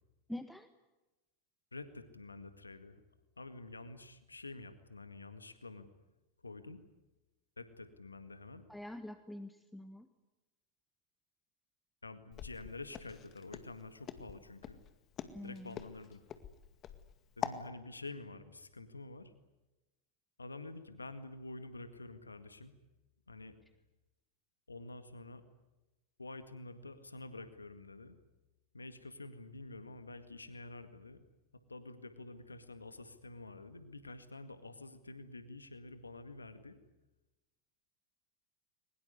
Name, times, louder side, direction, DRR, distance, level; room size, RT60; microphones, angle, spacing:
voice 1, 0.3-0.7 8.7-10.1 15.3-15.7, left 1 dB, 5° left, 9 dB, 1.5 m, -45 dB
voice 2, 1.7-3.0 3.4-5.9 6.4-6.8 7.6-8.6 12.0-14.8 15.4-16.2 17.4-19.3 20.4-22.7 23.3-23.6 24.7-25.4 26.2-28.2 28.7-31.2 31.7-36.8, left 2 dB, 85° left, 11 dB, 1.9 m, -48 dB
Walk footsteps, 12.3-17.6, left 9 dB, 35° left, 2.0 m, -44 dB
22.5 x 21.0 x 9.6 m, 1.0 s
figure-of-eight pair, 90°, 0 cm